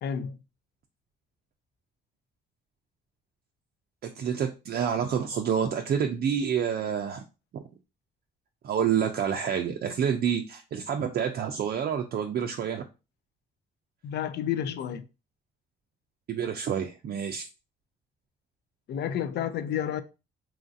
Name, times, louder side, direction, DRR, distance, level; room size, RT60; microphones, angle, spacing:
voice 1, 0.0-0.4 14.0-15.1 18.9-20.0, left 9 dB, 60° left, 0.4 m, -30 dB
voice 2, 4.0-7.2 7.5-7.6 8.6-12.8 16.3-17.4, right 8 dB, 50° right, 0.4 m, -28 dB
3.0 x 2.4 x 2.5 m
cardioid pair, 90°, 20 cm